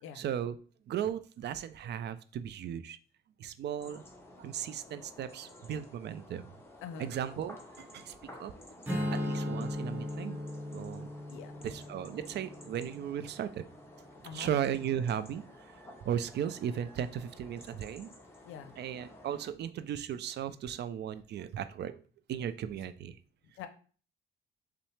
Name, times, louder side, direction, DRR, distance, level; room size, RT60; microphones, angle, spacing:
voice 1, 0.2-0.6 0.9-3.0 3.4-4.0 4.4-6.5 7.0-8.1 8.4-8.5 9.1-10.4 10.7-11.1 11.6-13.6 14.3-15.8 16.0-18.1 18.8-22.0 22.3-23.2, right 9 dB, 60° right, 12 dB, 0.4 m, -36 dB
sound 1, 3.8-19.5, left 1 dB, 10° left, 0.8 m, -53 dB
voice 2, 6.8-7.2 11.3-11.7 14.2-14.6 18.4-18.8 22.7-22.8 23.6-23.7, left 7 dB, 90° left, 9 dB, 0.5 m, -45 dB
Strum, 8.9-14.2, left 1 dB, 10° right, 1.2 m, -38 dB
5.4 x 2.0 x 3.2 m, 0.41 s
cardioid pair, 90°, 20 cm